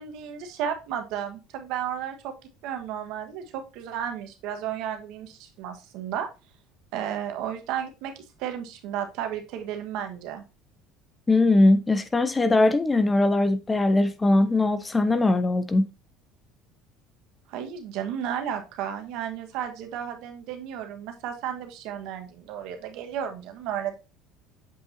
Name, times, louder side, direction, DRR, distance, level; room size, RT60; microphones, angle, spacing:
voice 1, 0.0-2.3 2.6-6.3 6.9-10.4 17.5-23.9, right 9 dB, 70° right, 1.4 m, -33 dB
voice 2, 11.3-15.9, left 2 dB, 20° left, 0.9 m, -21 dB
7.7 x 5.4 x 2.7 m
hypercardioid pair, 75°, 0 cm